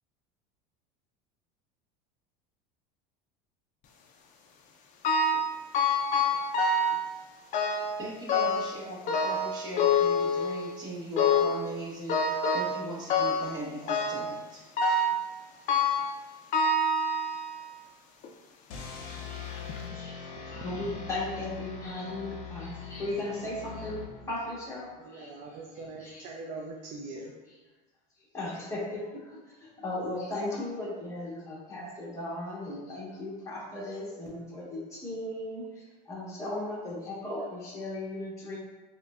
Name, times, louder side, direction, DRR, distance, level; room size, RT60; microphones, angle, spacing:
sound 1, 5.0-5.5 5.7-7.0 7.5-8.0 8.3-8.8 9.1-10.7 11.2-11.6 12.1-12.8 13.1-13.6 13.9-14.3 14.8-15.2 15.7-16.1 16.5-17.6 18.2-18.3 19.1-19.2 19.7-19.8, left 3 dB, 40° left, 0.4 m, -26 dB
voice 1, 8.0-14.6, right 1 dB, 20° right, -5 dB, 1.0 m, -39 dB
sound 2, 18.7-24.6, left 7 dB, 80° left, 0.7 m, -42 dB
voice 2, 19.3-20.2 20.5-26.3 27.5-27.6 28.3-38.6, left 1 dB, 15° left, -6 dB, 1.2 m, -37 dB
voice 3, 25.0-27.3, right 3 dB, 40° right, -1 dB, 0.4 m, -42 dB
4.8 x 2.2 x 2.3 m, 1.2 s
supercardioid pair, 135°, 20 cm